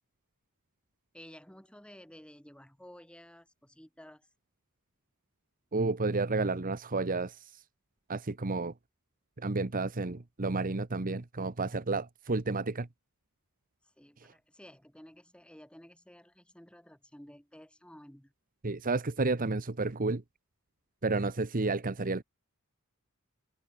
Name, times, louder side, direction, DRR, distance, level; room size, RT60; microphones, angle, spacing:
voice 1, 1.1-4.3 13.8-18.3, equal, 5° left, 4.3 m, -53 dB
voice 2, 5.7-7.5 8.1-8.7 9.4-12.9 18.6-20.2 21.0-22.2, right 3 dB, 40° right, 1.0 m, -31 dB
head